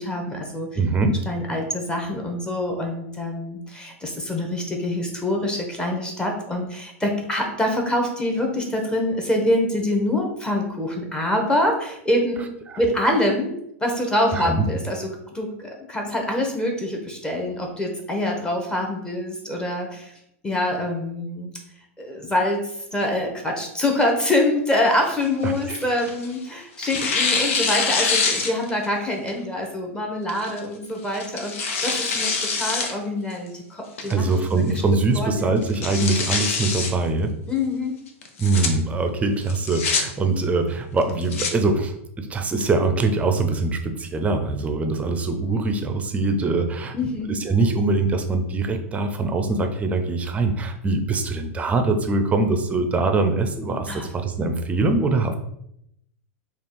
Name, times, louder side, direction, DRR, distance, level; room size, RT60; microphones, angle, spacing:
voice 1, 0.0-0.8 1.3-12.5 12.8-20.1 20.4-21.5 22.0-34.8 35.1-35.4 37.5-37.9 46.9-47.4 53.9-54.1, left 1 dB, 10° left, 1 dB, 1.0 m, -25 dB
voice 2, 0.8-1.2 12.7-12.8 14.3-14.6 25.4-25.8 34.1-37.3 38.4-55.4, right 3 dB, 20° right, 6 dB, 0.6 m, -23 dB
Tearing, 25.0-26.4 26.8-28.9 29.3-29.4 30.3-30.6 31.1-32.9 33.3-33.4 34.0-34.4 34.8-34.9 35.1-35.2 35.6-36.9 38.2-38.7 39.5-40.0 41.0-41.5, left 4 dB, 70° left, 0.8 m, -25 dB
3.4 x 2.4 x 4.2 m, 0.76 s
hypercardioid pair, 105°, 7 cm